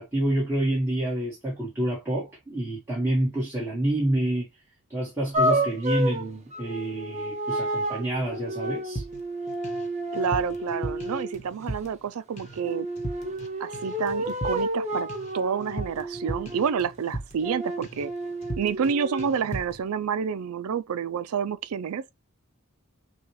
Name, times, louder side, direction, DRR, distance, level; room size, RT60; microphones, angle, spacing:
voice 1, 0.0-4.5 4.9-9.0, right 1 dB, 10° right, 1.4 m, -28 dB
sound 1, 5.3-11.4 12.6-16.9 17.4-19.3, right 1 dB, 30° right, 0.8 m, -30 dB
sound 2, 9.0-9.9 10.1-12.1 12.4-12.7 13.0-13.5 13.7-17.5 17.8-18.1 18.4-18.9 19.2-19.8, right 1 dB, 30° left, 1.0 m, -37 dB
voice 2, 10.1-12.9 13.6-15.1 15.3-18.1 18.6-22.0, right 7 dB, 80° right, 0.4 m, -29 dB
6.1 x 2.3 x 3.1 m
head